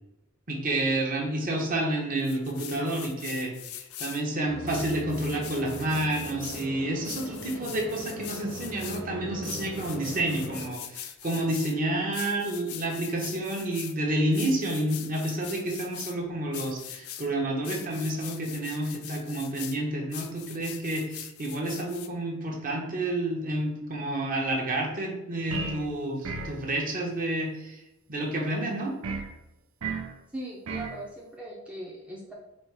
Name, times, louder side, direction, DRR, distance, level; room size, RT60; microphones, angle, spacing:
voice 1, 0.5-27.8 28.1-28.9, right 1 dB, 40° right, -1 dB, 0.9 m, -29 dB
sound 1, 2.2-4.2 4.7-6.7 7.0-9.0 9.4-11.7 12.1-13.9 14.3-16.1 16.5-17.3 17.6-19.8 20.1-22.1, left 11 dB, 80° left, 0.4 m, -42 dB
sound 2, 4.5-10.7, right 1 dB, 90° right, 1.3 m, -41 dB
sound 3, 25.5-25.9 26.2-26.6 29.0-29.3 29.8-30.1 30.7-31.0, right 4 dB, 70° right, 0.5 m, -33 dB
voice 2, 30.3-32.3, right 1 dB, 5° right, -4 dB, 0.6 m, -39 dB
4.2 x 2.5 x 4.6 m, 0.94 s
head